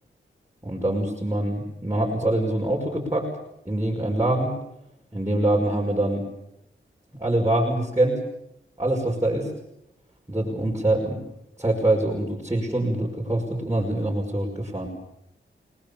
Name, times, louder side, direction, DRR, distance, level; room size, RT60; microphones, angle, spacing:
voice 1, 0.6-3.3 3.7-4.5 5.1-6.3 7.1-8.2 8.8-9.5 10.3-11.2 11.6-14.9, right 1 dB, 15° right, -3 dB, 5.6 m, -24 dB
30.0 x 20.5 x 7.1 m, 0.81 s
wide cardioid pair, 70°, 21 cm